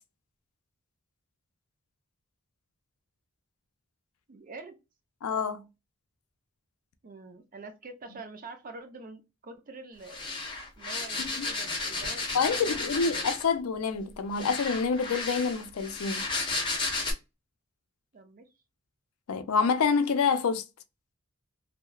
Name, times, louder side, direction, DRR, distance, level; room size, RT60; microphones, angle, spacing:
voice 1, 4.3-4.8 7.0-10.3 10.8-13.3 18.1-18.5, right 3 dB, 40° right, 0.5 m, -46 dB
voice 2, 5.2-5.6 11.2-11.5 12.3-16.2 19.3-20.6, left 5 dB, 80° left, 0.4 m, -27 dB
sound 1, 10.1-13.6 14.4-17.1, left 3 dB, 20° left, 0.7 m, -33 dB
2.8 x 2.0 x 2.2 m
head